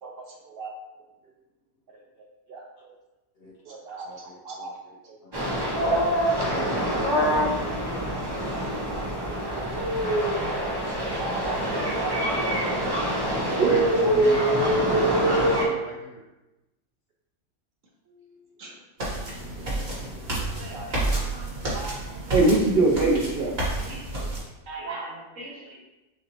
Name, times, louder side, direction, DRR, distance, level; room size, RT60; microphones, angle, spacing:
voice 1, 0.0-0.7 2.5-2.6 3.7-4.7 5.5-5.7 6.3-6.4 8.6-9.9 10.6-10.7 11.2-12.8 13.2-13.7 20.3-21.2 22.3-23.5, right 2 dB, 90° right, -1 dB, 0.5 m, -28 dB
voice 2, 4.0-5.4 12.6-12.9 19.4-20.4 24.1-24.3, left 2 dB, 60° left, -4 dB, 0.6 m, -50 dB
sound 1, 5.3-15.6, right 1 dB, 25° right, 0.6 m, -24 dB
voice 3, 6.4-8.0 12.4-12.6 13.7-16.2, left 1 dB, 85° left, -1 dB, 1.5 m, -36 dB
sound 2, 19.0-24.4, right 2 dB, 40° right, 1.6 m, -30 dB
voice 4, 20.6-21.5 21.7-21.9 23.8-24.0 24.7-25.8, right 3 dB, 55° right, -2 dB, 1.3 m, -39 dB
6.9 x 2.6 x 2.9 m, 1.0 s
omnidirectional pair, 1.7 m